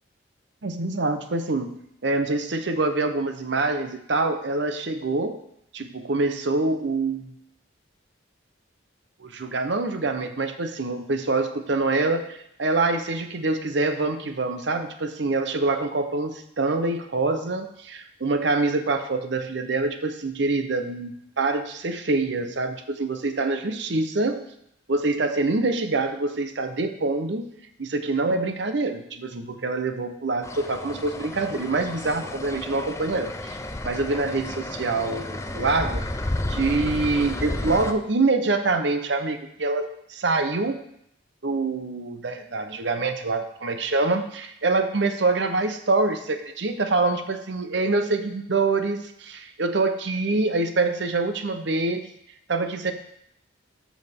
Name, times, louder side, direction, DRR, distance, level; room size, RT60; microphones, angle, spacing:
voice 1, 0.6-1.8 2.0-5.4 5.7-7.3 9.2-24.4 24.9-27.5 27.8-33.6 33.8-36.0 36.5-40.8 41.4-52.1 52.5-52.9, right 3 dB, 65° right, 8 dB, 0.8 m, -25 dB
sound 1, 30.4-37.9, left 1 dB, 15° left, 0.5 m, -32 dB
12.0 x 6.3 x 3.5 m, 0.75 s
head